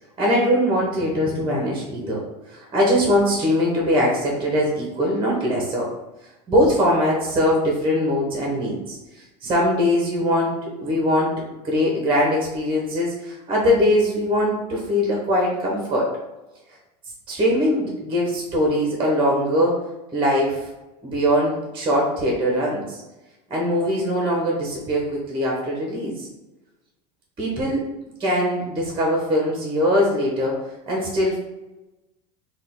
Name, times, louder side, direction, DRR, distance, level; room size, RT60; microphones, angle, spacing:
voice 1, 0.2-5.9 6.5-11.4 11.6-16.1 17.3-19.8 20.1-20.7 21.0-23.0 23.5-26.3 27.4-27.8 28.2-30.6 30.9-31.4, equal, 25° right, -2 dB, 1.3 m, -21 dB
3.9 x 2.6 x 3.8 m, 1.0 s
hypercardioid pair, 90°, 20 cm